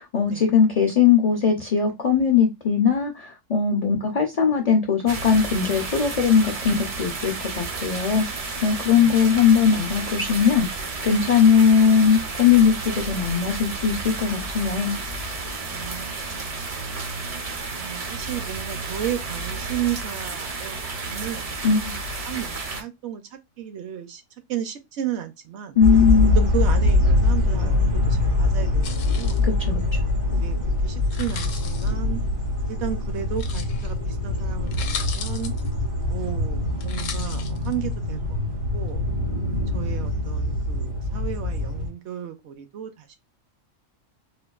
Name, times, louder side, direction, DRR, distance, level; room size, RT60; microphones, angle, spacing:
voice 1, 0.0-15.0 21.6-21.9 25.8-26.4 29.4-29.8, left 6 dB, 60° left, 0.4 m, -20 dB
sound 1, 5.1-22.8, right 3 dB, 50° right, 0.4 m, -32 dB
voice 2, 15.7-16.6 17.7-21.5 21.9-24.2 24.5-25.8 26.4-29.4 30.3-32.2 32.7-35.5 36.1-38.5 38.7-39.0 39.7-43.1, right 10 dB, 65° right, 0.8 m, -34 dB
sound 2, 25.8-41.9, left 2 dB, 90° right, 2.6 m, -23 dB
sound 3, 28.8-29.4 31.0-31.9 33.4-33.9 34.4-34.5 34.7-35.7 36.8-37.7, left 7 dB, 75° left, 1.0 m, -36 dB
4.3 x 2.2 x 2.3 m
omnidirectional pair, 1.4 m